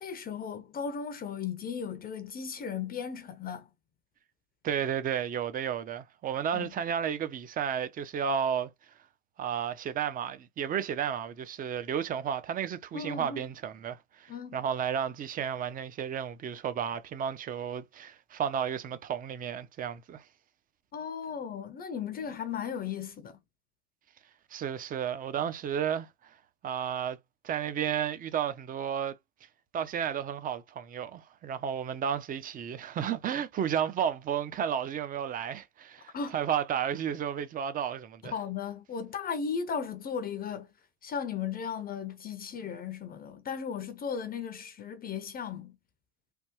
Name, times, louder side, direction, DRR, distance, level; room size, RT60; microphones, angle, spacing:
voice 1, 0.0-3.7 6.5-6.7 12.9-13.4 14.3-14.6 20.9-23.4 36.1-36.4 38.2-40.7 41.0-45.7, left 6 dB, 25° left, 0.6 m, -36 dB
voice 2, 4.6-8.7 9.4-20.2 24.5-26.1 26.6-27.2 27.4-29.1 29.7-38.3, right 8 dB, 25° right, 0.6 m, -32 dB
3.4 x 2.2 x 3.0 m
hypercardioid pair, 100°, 34 cm